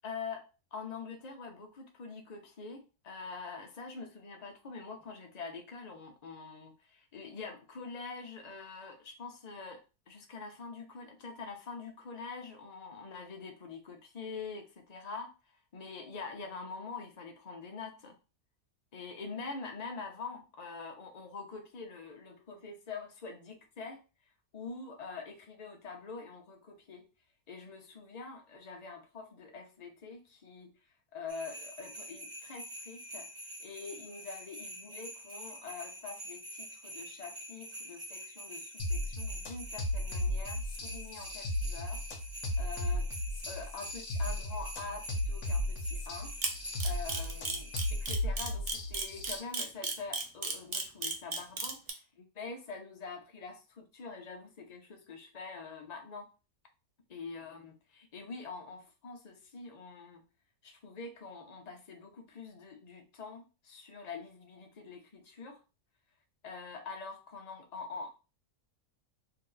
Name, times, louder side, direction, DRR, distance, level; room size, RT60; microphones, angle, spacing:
voice 1, 0.0-15.3 15.7-18.2 18.9-24.0 24.5-27.1 27.5-30.7 31.1-33.3 33.6-42.0 42.6-43.1 43.5-46.3 46.8-51.8 52.2-56.3 57.1-60.2 60.6-65.6 66.4-68.1, left 4 dB, 45° left, 4 dB, 0.5 m, -45 dB
sound 1, 31.3-48.2, equal, 25° right, 0.8 m, -46 dB
sound 2, 38.8-49.4, left 1 dB, 70° left, 1.1 m, -35 dB
Camera, 46.4-51.9, right 4 dB, 70° right, 0.3 m, -33 dB
2.8 x 2.7 x 3.8 m, 0.31 s
omnidirectional pair, 1.6 m